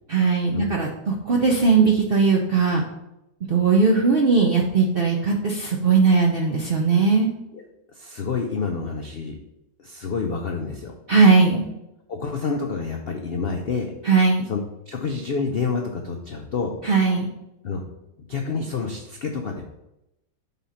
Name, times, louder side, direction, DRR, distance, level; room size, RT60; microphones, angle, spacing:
voice 1, 0.1-2.8 3.5-7.3 11.1-11.7 14.0-14.4 16.8-17.3, right 4 dB, 60° right, -1 dB, 0.6 m, -19 dB
voice 2, 7.9-9.4 9.8-10.9 12.1-13.9 14.5-16.8 17.6-17.8 18.3-19.6, left 5 dB, 75° left, 3 dB, 0.5 m, -28 dB
5.5 x 4.1 x 5.6 m, 0.89 s
omnidirectional pair, 1.9 m